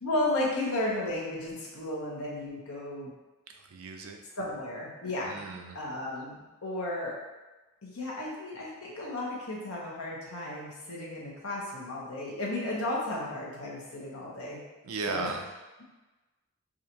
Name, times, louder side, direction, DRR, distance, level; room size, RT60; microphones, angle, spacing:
voice 1, 0.0-3.1 4.4-5.4 5.7-7.2 7.8-14.6 15.1-15.3, left 1 dB, 90° left, -4 dB, 1.1 m, -34 dB
voice 2, 3.7-4.2 5.2-5.8 14.8-15.4, right 4 dB, 85° right, 3 dB, 0.5 m, -36 dB
4.8 x 2.6 x 2.9 m, 1.1 s
head